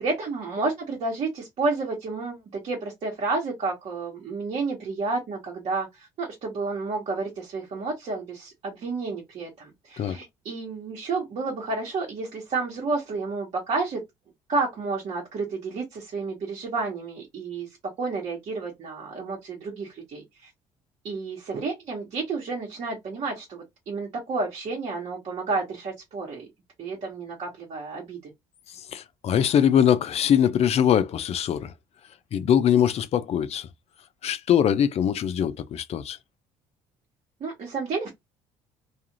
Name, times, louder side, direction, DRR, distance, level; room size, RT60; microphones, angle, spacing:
voice 1, 0.0-14.0 14.5-17.7 18.0-20.5 21.0-26.5 26.8-28.3 37.4-38.1, right 3 dB, 55° right, 1.2 m, -31 dB
voice 2, 28.7-31.7 32.3-33.7 34.2-36.2, left 9 dB, 50° left, 0.4 m, -22 dB
2.4 x 2.4 x 2.9 m
supercardioid pair, 70°, 14 cm